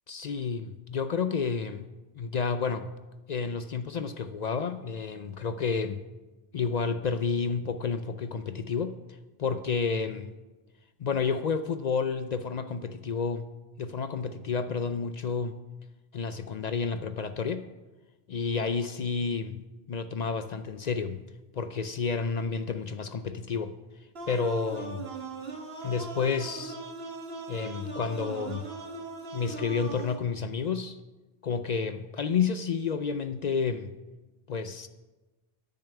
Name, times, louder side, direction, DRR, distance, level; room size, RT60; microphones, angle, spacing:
voice 1, 0.1-1.9 2.2-2.9 3.3-6.0 6.5-9.0 9.4-10.3 11.0-13.5 13.8-15.5 16.1-17.7 18.3-19.6 19.9-21.2 21.5-23.7 24.3-25.1 25.8-26.8 27.5-28.7 29.3-31.0 31.4-33.9 34.5-34.9, left 5 dB, 55° left, 11 dB, 0.4 m, -30 dB
sound 1, 24.2-30.2, right 3 dB, 60° right, 1.7 m, -39 dB
10.5 x 6.7 x 8.1 m, 1.2 s
omnidirectional pair, 1.2 m